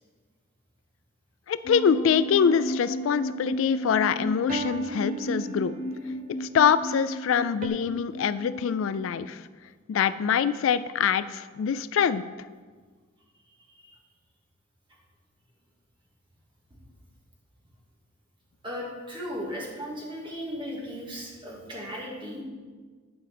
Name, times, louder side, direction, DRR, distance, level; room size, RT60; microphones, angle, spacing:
voice 1, 1.5-5.7 6.4-9.4 9.9-12.2, left 7 dB, 75° left, 14 dB, 0.3 m, -24 dB
sound 1, 1.6-9.1, equal, 55° left, 0.8 m, -34 dB
sound 2, 2.4-3.1 4.5-6.1 7.6-7.7, right 3 dB, 40° right, 0.6 m, -38 dB
voice 2, 18.6-22.4, equal, 25° right, -3 dB, 2.0 m, -36 dB
10.0 x 5.0 x 5.9 m, 1.5 s
head